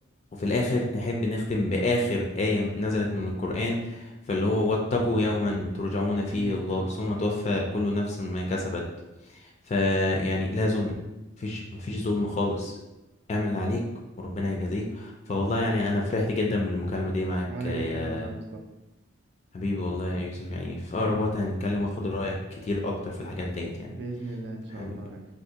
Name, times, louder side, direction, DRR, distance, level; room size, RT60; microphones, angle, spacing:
voice 1, 0.4-8.9 9.4-11.0 11.4-12.8 13.3-13.8 14.2-18.3 19.5-23.9 24.7-24.9, left 2 dB, 30° left, 0 dB, 0.3 m, -28 dB
voice 2, 6.3-7.4 17.5-18.6 23.9-25.3, right 2 dB, 55° right, 3 dB, 0.4 m, -37 dB
3.4 x 2.4 x 2.8 m, 1.0 s
head